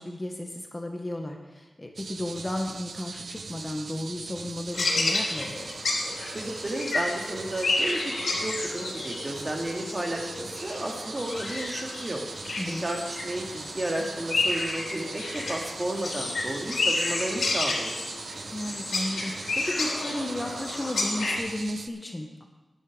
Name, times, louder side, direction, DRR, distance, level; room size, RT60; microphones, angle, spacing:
voice 1, 0.0-5.7 12.6-12.9 18.5-22.4, left 1 dB, 20° left, 2 dB, 1.7 m, -34 dB
sound 1, 2.0-21.9, right 4 dB, 70° right, 0.6 m, -41 dB
sound 2, 4.7-21.4, left 2 dB, 80° left, 3.1 m, -31 dB
voice 2, 6.3-12.2 12.8-18.0, right 1 dB, 30° right, 1 dB, 2.5 m, -33 dB
12.0 x 10.5 x 5.2 m, 1.2 s
cardioid pair, 60°, 0 cm